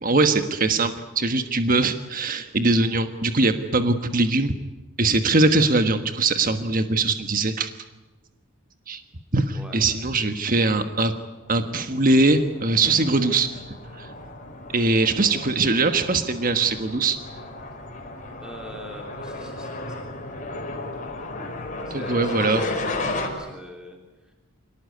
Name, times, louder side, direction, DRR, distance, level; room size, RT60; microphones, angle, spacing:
voice 1, 0.0-4.5 5.0-7.7 8.9-9.0 9.3-11.1 11.5-13.5 14.0-14.1 14.7-17.2 21.9-22.6, right 3 dB, 40° right, 8 dB, 1.4 m, -21 dB
sound 1, 11.6-23.3, left 2 dB, 35° left, 5.4 m, -34 dB
voice 2, 18.4-20.1 21.9-24.3, equal, 5° right, 1 dB, 3.4 m, -42 dB
27.5 x 18.5 x 9.5 m, 1.2 s
head